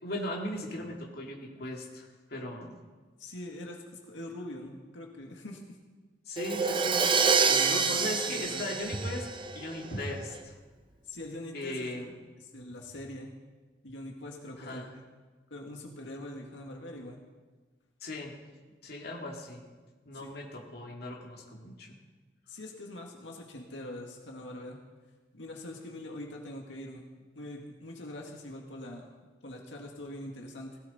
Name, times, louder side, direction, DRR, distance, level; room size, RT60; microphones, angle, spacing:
voice 1, 0.0-2.8 6.3-7.0 7.7-10.6 11.5-12.2 14.6-14.9 18.0-18.3 18.8-19.6 20.1-21.9, left 1 dB, 60° left, 0 dB, 2.3 m, -38 dB
voice 2, 3.2-5.8 7.5-8.0 8.3-8.7 11.0-13.3 13.8-15.0 15.5-17.2 20.1-20.3 22.5-24.8 25.3-27.0 27.3-29.1 29.4-30.8, left 1 dB, 90° left, 0 dB, 1.9 m, -43 dB
Crash cymbal, 6.4-10.1, right 5 dB, 30° right, 0.7 m, -27 dB
18.0 x 16.5 x 4.2 m, 1.3 s
head